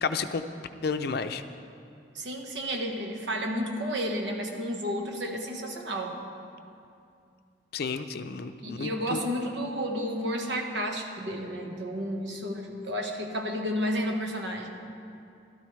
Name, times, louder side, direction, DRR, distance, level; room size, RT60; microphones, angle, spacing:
voice 1, 0.0-0.4 0.8-1.4 7.7-9.2, left 5 dB, 60° left, 9 dB, 0.5 m, -31 dB
voice 2, 2.1-6.2 8.6-14.7, equal, 75° right, 2 dB, 1.3 m, -31 dB
15.5 x 13.0 x 3.2 m, 2.5 s
head